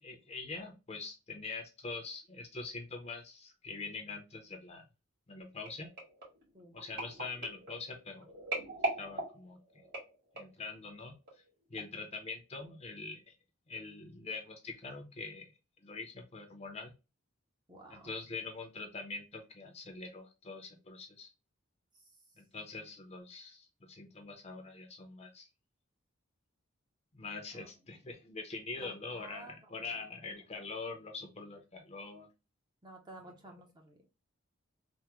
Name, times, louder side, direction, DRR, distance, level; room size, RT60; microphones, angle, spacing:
voice 1, 0.0-4.8 5.3-5.9 6.7-8.3 9.0-9.6 10.3-11.4 11.7-13.3 13.7-15.5 15.8-16.9 17.9-21.3 22.4-25.5 27.1-32.3, left 4 dB, 30° left, 3 dB, 0.6 m, -44 dB
sound 1, 5.7-10.7 11.3-11.5 11.8-11.9, right 2 dB, 50° right, 1.8 m, -40 dB
voice 2, 17.7-18.1 21.9-22.4 27.5-27.8 28.7-30.1 32.8-34.1, right 1 dB, 20° right, 1 dB, 0.6 m, -54 dB
3.5 x 2.1 x 2.9 m, 0.28 s
head